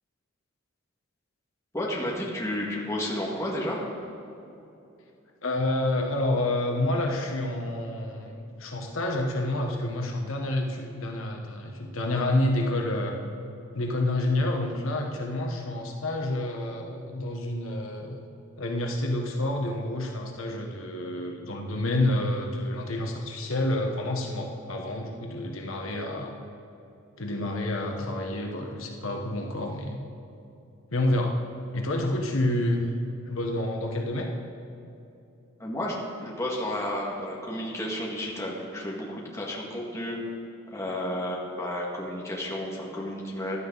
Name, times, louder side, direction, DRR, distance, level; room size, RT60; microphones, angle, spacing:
voice 1, 1.7-3.9 35.6-36.0 36.2-40.2 40.7-43.6, left 1 dB, 15° left, -4 dB, 1.9 m, -32 dB
voice 2, 5.4-13.2 13.7-18.2 18.6-26.3 27.2-30.0 30.9-31.4 31.7-32.8 33.3-34.3, left 1 dB, 75° left, 2 dB, 1.2 m, -28 dB
15.5 x 11.5 x 4.0 m, 2.8 s
head